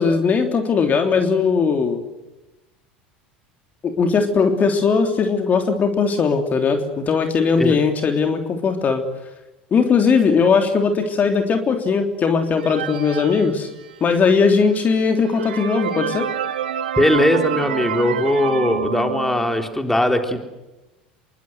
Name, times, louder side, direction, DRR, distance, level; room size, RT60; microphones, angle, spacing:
voice 1, 0.0-2.0 3.8-9.0 9.7-13.7 14.0-16.3, left 5 dB, 30° left, 5 dB, 3.3 m, -19 dB
sound 1, 12.6-14.2 14.8-14.9 15.2-19.8, right 7 dB, 70° right, 2.7 m, -28 dB
voice 2, 17.0-20.4, left 1 dB, 5° left, 5 dB, 3.9 m, -19 dB
28.0 x 23.5 x 8.0 m, 1.0 s
figure-of-eight pair, 75°, 5 cm